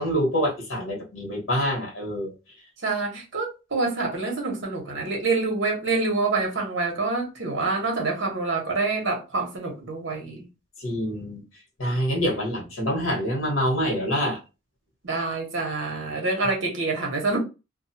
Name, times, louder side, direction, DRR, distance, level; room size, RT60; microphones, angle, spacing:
voice 1, 0.0-2.3 10.8-11.4 11.8-14.4, equal, 75° left, 1.2 m, -26 dB
voice 2, 2.8-10.5 15.0-17.4, right 3 dB, 60° right, 1.1 m, -26 dB
2.5 x 2.4 x 2.7 m
head